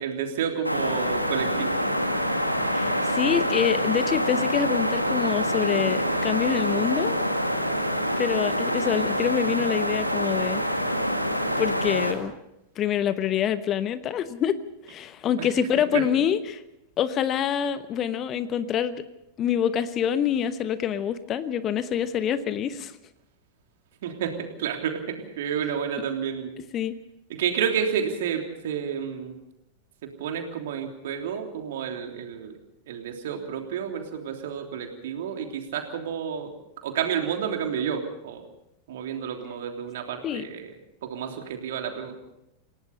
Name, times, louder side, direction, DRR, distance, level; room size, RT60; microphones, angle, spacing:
voice 1, 0.0-1.8 15.4-15.5 15.9-16.0 24.0-24.3 24.6-26.5 27.3-29.3 30.0-32.5 32.9-36.5 36.8-38.4 38.9-40.7 41.0-42.1, right 8 dB, 55° right, 3 dB, 3.3 m, -30 dB
sound 1, 0.6-12.1, equal, 90° left, 2.1 m, -26 dB
voice 2, 2.7-7.2 8.2-10.8 11.6-12.3 12.8-14.6 14.8-16.6 17.0-19.0 19.4-23.0 26.7-26.9 40.2-40.5, left 9 dB, 30° left, 13 dB, 1.0 m, -26 dB
28.0 x 17.5 x 5.4 m, 0.85 s
figure-of-eight pair, 90°, 0 cm